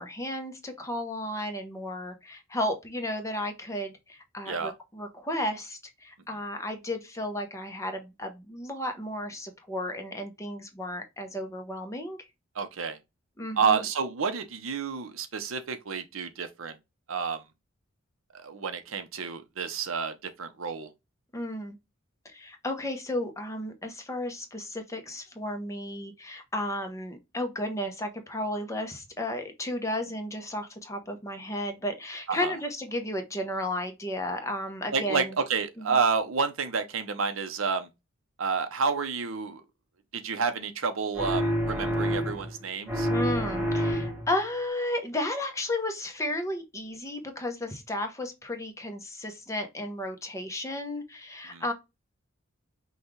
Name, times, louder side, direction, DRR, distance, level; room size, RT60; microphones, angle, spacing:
voice 1, 0.0-12.2 13.4-13.8 21.3-21.8 22.2-35.4 35.8-36.0 43.1-51.7, left 1 dB, 15° left, 0.8 m, -33 dB
voice 2, 12.6-13.0 13.6-16.8 17.1-17.4 18.3-20.9 32.3-32.5 34.9-37.9 38.4-39.6 40.1-43.1 51.5-51.6, right 5 dB, 85° right, 0.7 m, -29 dB
sound 1, 41.1-42.6 42.9-44.4, equal, 10° right, 1.1 m, -28 dB
5.5 x 2.4 x 3.1 m
head